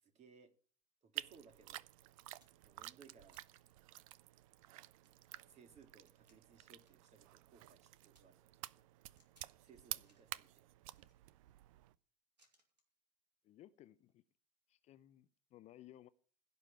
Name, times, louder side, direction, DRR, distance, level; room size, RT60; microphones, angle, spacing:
voice 1, 0.0-0.5 1.0-1.8 2.6-3.4 5.5-8.8 9.6-10.5, right 6 dB, 35° right, 2.3 m, -63 dB
sound 1, 1.1-11.9, right 16 dB, 55° right, 0.6 m, -51 dB
sound 2, 2.4-2.8 3.3-3.8 4.2-4.3 4.7-7.2 7.5-8.2 9.2-9.6 9.9-10.4 10.9-11.6 12.4-12.9 14.0-14.1, right 1 dB, 90° right, 3.0 m, -76 dB
voice 2, 13.4-14.2 14.7-16.1, left 13 dB, 35° left, 0.6 m, -59 dB
16.0 x 5.4 x 8.6 m
figure-of-eight pair, 80°, 21 cm